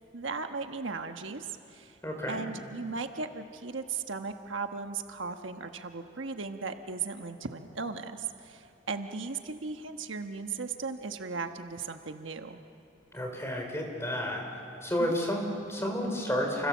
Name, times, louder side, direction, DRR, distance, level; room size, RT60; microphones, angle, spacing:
voice 1, 0.0-2.0 2.3-12.6 15.0-15.2, right 4 dB, 75° right, 6 dB, 1.2 m, -37 dB
voice 2, 2.0-2.4 13.1-14.4 14.8-16.7, equal, 15° left, 2 dB, 4.3 m, -31 dB
29.5 x 26.5 x 7.3 m, 2.7 s
head